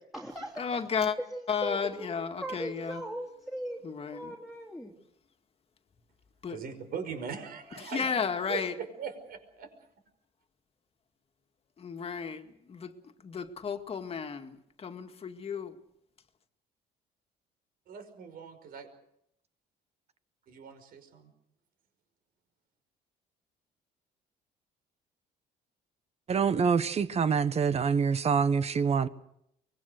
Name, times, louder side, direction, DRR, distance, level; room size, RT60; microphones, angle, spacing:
voice 1, 0.0-0.8 1.3-2.1 2.4-4.9, right 1 dB, ahead, 3.1 m, -39 dB
voice 2, 0.6-1.2 1.5-3.0 3.8-4.4 6.4-6.6 7.7-8.8 11.8-15.8, left 6 dB, 35° left, 2.1 m, -33 dB
voice 3, 6.5-8.1 8.5-8.6 9.0-9.7 17.9-18.9 20.5-21.3, right 6 dB, 60° right, 5.5 m, -40 dB
voice 4, 26.3-29.1, right 6 dB, 40° right, 1.3 m, -26 dB
24.5 x 21.5 x 6.7 m
cardioid pair, 110°, 17 cm